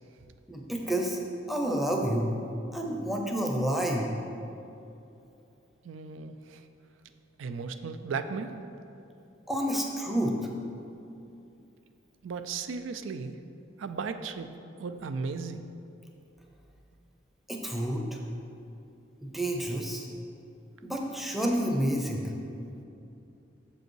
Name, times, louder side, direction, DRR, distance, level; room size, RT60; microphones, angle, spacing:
voice 1, 0.5-1.2 1.5-2.3 2.7-4.1 9.5-10.3 17.5-18.2 19.2-20.1 20.8-22.2, right 1 dB, ahead, 0 dB, 0.6 m, -29 dB
voice 2, 5.8-6.6 7.4-8.6 12.2-13.4 13.8-15.7, right 5 dB, 80° right, 9 dB, 0.4 m, -36 dB
6.7 x 5.3 x 4.6 m, 2.7 s
head